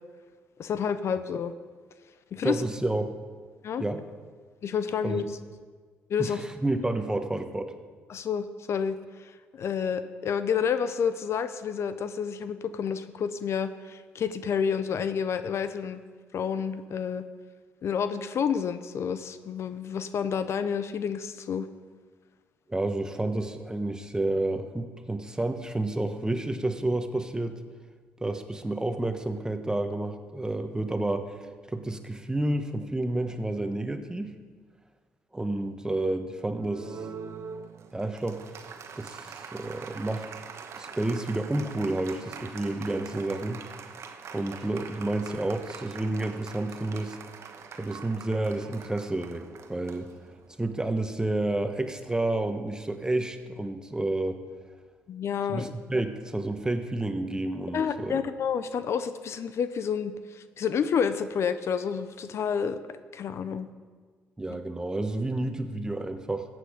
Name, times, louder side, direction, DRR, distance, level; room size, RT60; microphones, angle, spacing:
voice 1, 0.6-1.5 2.3-2.6 3.6-3.8 4.6-5.3 6.1-6.4 8.1-16.0 16.3-17.2 17.8-21.7 55.1-55.7 57.7-63.7, left 7 dB, 60° left, 12 dB, 0.6 m, -29 dB
voice 2, 2.4-3.1 3.8-4.0 5.0-5.2 6.2-7.7 22.7-27.6 28.2-31.4 31.7-34.4 35.3-37.0 37.9-38.4 38.9-40.3 40.8-43.6 44.3-47.2 47.8-50.1 50.6-54.4 55.5-58.1 64.4-66.5, right 2 dB, 15° right, 7 dB, 1.2 m, -30 dB
Applause, 36.6-50.7, right 6 dB, 60° right, 1.1 m, -44 dB
14.0 x 7.9 x 5.1 m, 1.5 s
supercardioid pair, 60°, 5 cm